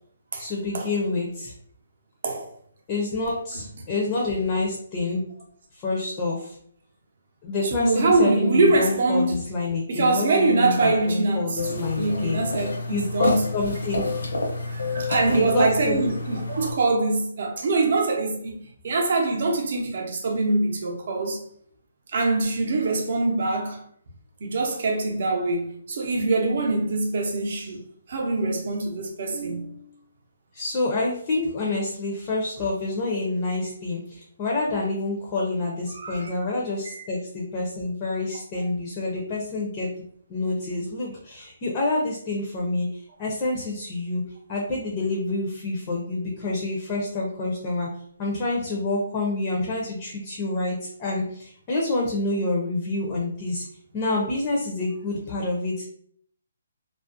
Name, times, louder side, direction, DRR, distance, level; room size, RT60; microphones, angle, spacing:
voice 1, 0.4-1.5 2.9-5.2 5.7-6.6 7.4-14.0 15.3-16.0 30.5-39.9 40.3-44.2 44.5-47.9 48.2-53.6 53.9-55.8, left 2 dB, 25° left, 0.5 m, -27 dB
voice 2, 7.7-9.4 9.9-13.4 14.7-21.4 22.1-23.8 24.4-27.8 28.1-29.8 35.9-36.3 36.9-37.0 38.5-38.7, right 3 dB, 50° right, 0.6 m, -24 dB
sound 1, 11.6-16.7, left 3 dB, 85° left, 0.8 m, -29 dB
2.3 x 2.0 x 2.5 m
hypercardioid pair, 165°, 0 cm